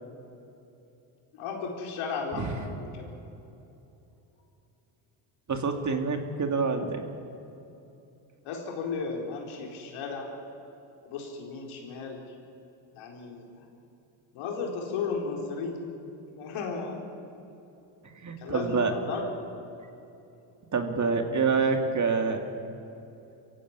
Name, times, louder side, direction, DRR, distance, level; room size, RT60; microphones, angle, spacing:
voice 1, 1.3-3.1 8.4-10.3 11.0-12.3 12.9-13.6 14.3-15.9 16.4-17.0 18.4-19.3, left 4 dB, 85° left, 1 dB, 4.5 m, -35 dB
voice 2, 5.5-7.0 18.2-18.9 20.7-22.4, right 4 dB, 35° right, 5 dB, 2.7 m, -27 dB
23.0 x 15.5 x 9.8 m, 2.9 s
cardioid pair, 90°, 48 cm